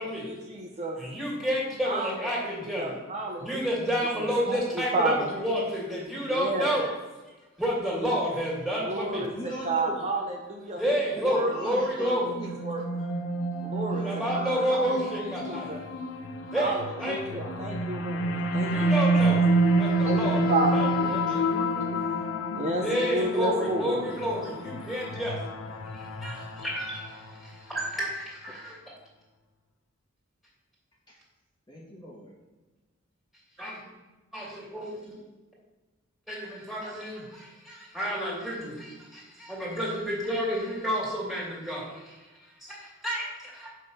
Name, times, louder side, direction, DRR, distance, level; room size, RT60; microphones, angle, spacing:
voice 1, 0.0-1.0 1.8-3.7 4.2-5.3 6.3-6.8 8.8-10.8 11.2-11.5 12.0-12.2 12.6-13.1 13.6-15.0 15.4-15.8 16.6-19.4 20.0-21.0 22.5-24.1, right 2 dB, 35° right, 0 dB, 0.7 m, -31 dB
voice 2, 1.0-2.9 3.4-6.9 7.6-9.3 10.7-12.3 14.0-15.9 16.5-16.7 17.0-17.5 18.6-19.4 19.7-21.4 22.8-25.4 25.8-28.8 33.6-33.8 34.3-35.2 36.3-43.7, equal, ahead, -5 dB, 2.4 m, -30 dB
voice 3, 9.3-10.0 11.1-12.5 13.9-14.6 17.0-17.6 21.0-22.1 28.5-28.6 31.1-31.2 31.7-32.3, equal, 20° left, -4 dB, 1.3 m, -41 dB
sound 1, 12.2-27.5, right 1 dB, 80° left, 0.7 m, -28 dB
6.5 x 5.3 x 5.5 m, 1.2 s
head